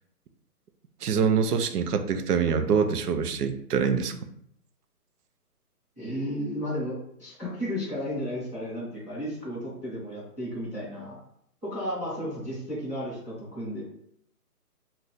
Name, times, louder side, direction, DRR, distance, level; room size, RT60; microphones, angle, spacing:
voice 1, 1.0-4.2, right 6 dB, 80° right, 8 dB, 0.6 m, -25 dB
voice 2, 6.0-11.2 11.6-13.8, equal, 10° right, -16 dB, 0.9 m, -33 dB
2.7 x 2.3 x 3.8 m, 0.70 s
hypercardioid pair, 175°, 47 cm